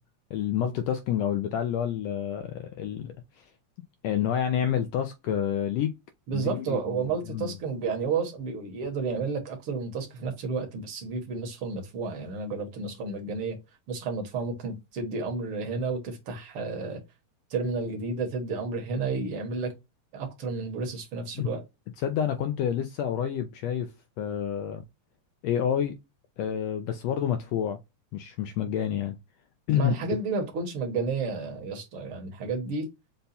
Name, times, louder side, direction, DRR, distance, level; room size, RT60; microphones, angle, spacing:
voice 1, 0.3-3.5 4.0-5.9 6.3-7.0 7.3-7.5 21.4-21.5 22.0-24.8 25.4-26.0 26.4-27.8 28.1-29.2 29.7-29.9, left 9 dB, 85° left, 1.5 m, -28 dB
voice 2, 6.3-13.6 13.9-17.0 17.5-19.7 20.1-21.6 29.7-32.9, right 4 dB, 60° right, 1.6 m, -31 dB
5.4 x 2.2 x 4.0 m
omnidirectional pair, 3.5 m